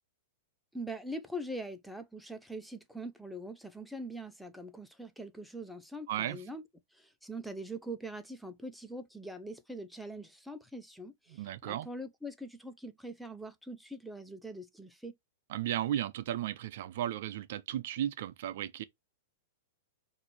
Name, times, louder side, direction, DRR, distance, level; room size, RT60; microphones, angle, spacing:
voice 1, 0.7-6.6 6.9-15.1, right 1 dB, ahead, 0.6 m, -43 dB
voice 2, 6.1-6.4 11.3-11.9 15.5-18.8, right 11 dB, 65° right, 0.5 m, -35 dB
5.8 x 2.7 x 3.2 m
hypercardioid pair, 125°, 0 cm